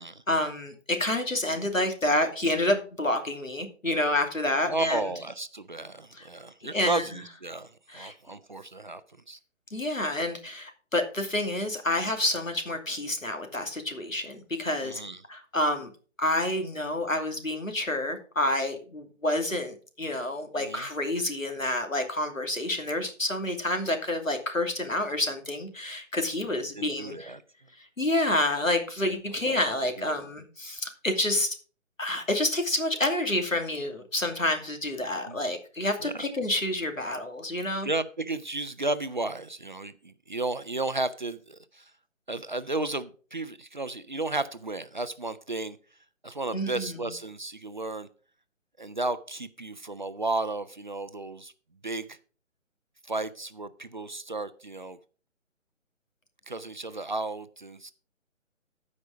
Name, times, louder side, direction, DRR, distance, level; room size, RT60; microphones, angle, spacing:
voice 1, 0.3-5.0 6.2-6.3 6.7-7.0 7.9-8.1 9.7-15.0 15.3-15.9 16.2-27.4 28.0-31.6 32.0-37.9 46.5-47.0, left 1 dB, 80° left, 6 dB, 2.7 m, -28 dB
voice 2, 4.6-9.0 9.3-9.4 14.8-15.2 20.5-20.9 26.4-27.4 29.6-30.2 35.3-35.4 36.0-36.3 37.8-41.9 42.3-45.8 46.2-48.1 48.8-51.5 51.8-52.2 53.0-55.0 56.5-57.9, right 2 dB, 40° right, 13 dB, 0.5 m, -33 dB
14.5 x 5.4 x 4.9 m, 0.39 s
figure-of-eight pair, 145°, 39 cm